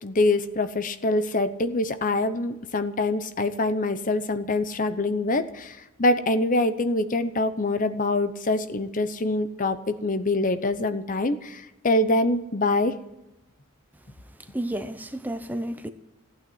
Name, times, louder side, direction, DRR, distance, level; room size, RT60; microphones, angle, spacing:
voice 1, 0.0-13.0, left 2 dB, 35° left, 0.8 m, -25 dB
voice 2, 14.4-15.9, right 1 dB, 10° right, 0.7 m, -31 dB
15.0 x 8.9 x 9.4 m
head